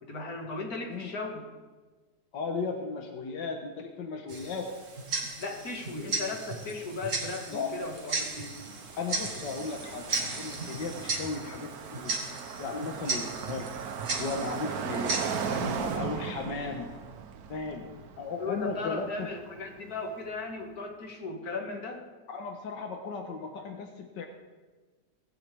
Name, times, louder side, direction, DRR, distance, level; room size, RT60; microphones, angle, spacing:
voice 1, 0.0-1.5 5.4-8.6 18.4-22.1, left 3 dB, 60° left, 1 dB, 2.4 m, -37 dB
voice 2, 2.3-4.7 7.5-7.7 9.0-12.2 12.6-13.7 14.2-16.9 17.5-17.9 18.2-19.3 22.3-24.3, left 4 dB, 85° left, 3 dB, 1.9 m, -36 dB
Tick-tock, 4.3-16.0, right 3 dB, 50° right, 1.9 m, -36 dB
Car passing by, 8.0-20.0, right 7 dB, 65° right, 1.3 m, -38 dB
18.5 x 13.5 x 3.5 m, 1.4 s
omnidirectional pair, 1.8 m